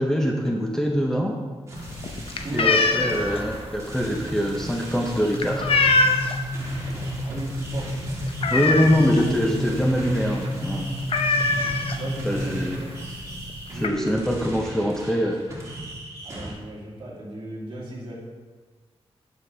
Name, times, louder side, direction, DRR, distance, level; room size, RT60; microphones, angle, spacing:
voice 1, 0.0-1.4 2.5-5.8 8.5-10.9 12.2-12.8 13.8-15.4, equal, 5° left, 0 dB, 0.6 m, -23 dB
sound 1, 1.7-16.5, right 1 dB, 25° right, 1.8 m, -37 dB
sound 2, 1.8-6.5 6.9-7.2 7.5-7.6 7.9-9.3 9.7-9.8 10.1-10.3 10.5-10.6 11.1-12.3 13.1-13.2 13.5-13.9, left 3 dB, 60° left, 0.6 m, -23 dB
voice 2, 2.4-2.9 7.0-8.2 11.9-12.9 13.7-14.2 16.2-18.1, right 2 dB, 45° right, -5 dB, 2.4 m, -36 dB
sound 3, 5.4-12.9, equal, 20° left, 1.0 m, -32 dB
9.2 x 6.7 x 3.4 m, 1.4 s
wide cardioid pair, 135°, 11 cm